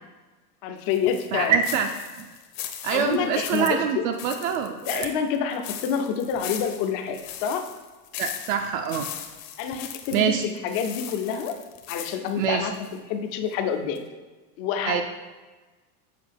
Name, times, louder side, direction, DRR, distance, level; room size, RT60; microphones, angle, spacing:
voice 1, 0.6-1.5 2.9-4.0 4.9-7.7 9.6-11.5 11.9-12.7 13.1-14.0 14.6-15.0, left 7 dB, 35° left, 6 dB, 0.4 m, -27 dB
sound 1, 0.9-13.0 13.4-13.5 14.0-14.1, left 10 dB, 60° left, 0.9 m, -38 dB
voice 2, 1.3-1.9 2.8-5.1 8.2-9.1 10.1-10.4 12.4-12.7 14.8-15.0, right 7 dB, 60° right, 5 dB, 0.5 m, -25 dB
7.5 x 4.3 x 3.3 m, 1.3 s
supercardioid pair, 150°, 47 cm